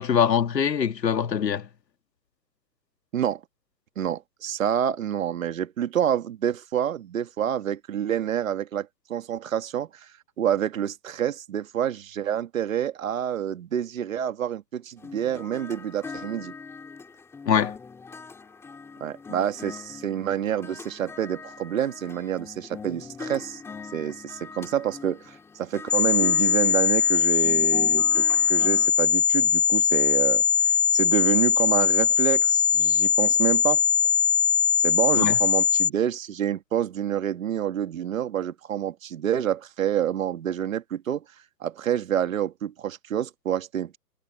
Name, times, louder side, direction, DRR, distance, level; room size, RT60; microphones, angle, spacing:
voice 1, 0.0-1.7 17.5-17.7 35.2-35.4, left 8 dB, 85° left, 2.0 m, -23 dB
voice 2, 4.0-10.1 10.4-16.5 19.0-23.6 23.9-33.8 34.8-41.2 41.6-44.0, right 9 dB, 55° right, 1.8 m, -28 dB
sound 1, 15.0-28.9, left 5 dB, 5° left, 4.0 m, -42 dB
sound 2, 25.9-35.9, left 7 dB, 50° left, 2.7 m, -21 dB
hypercardioid pair, 165°, 49 cm